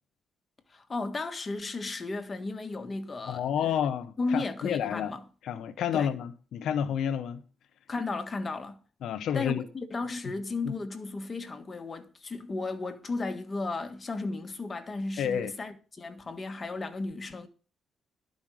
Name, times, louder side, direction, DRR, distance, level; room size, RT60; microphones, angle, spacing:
voice 1, 0.7-3.8 4.2-5.2 5.9-6.1 7.9-8.8 9.3-17.5, left 3 dB, 30° left, 1.6 m, -34 dB
voice 2, 3.2-5.1 5.4-7.4 9.0-9.7 10.7-10.8 15.2-15.5, left 9 dB, 75° left, 0.8 m, -30 dB
12.0 x 5.3 x 7.5 m
cardioid pair, 90°, 0 cm